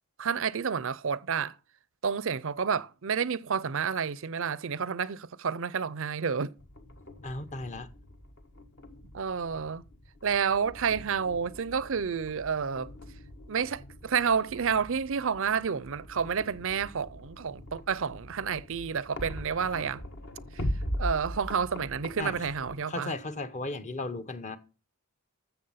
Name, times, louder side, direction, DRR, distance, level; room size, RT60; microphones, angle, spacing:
voice 1, 0.2-1.5 2.0-6.5 9.1-9.8 10.2-12.9 13.5-20.0 20.5-20.6 21.0-23.1, right 6 dB, 60° right, 0.6 m, -30 dB
sound 1, 6.6-22.8, equal, 55° left, 1.4 m, -41 dB
voice 2, 7.2-7.9 22.2-22.3 22.9-24.6, left 2 dB, 35° left, 0.9 m, -35 dB
13.5 x 7.1 x 5.6 m
head